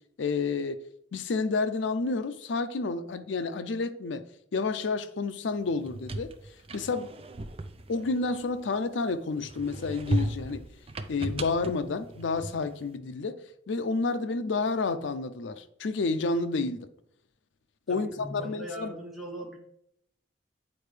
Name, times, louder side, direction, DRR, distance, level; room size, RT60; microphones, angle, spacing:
voice 1, 0.2-0.8 1.1-4.2 4.5-6.3 6.7-7.1 7.9-10.6 11.1-16.9 17.9-19.0, left 3 dB, 85° left, 0.5 m, -30 dB
sound 1, 5.7-8.9 9.4-12.8, right 1 dB, 30° right, 0.4 m, -35 dB
voice 2, 17.9-19.6, equal, ahead, 1.2 m, -40 dB
8.5 x 4.4 x 3.3 m
head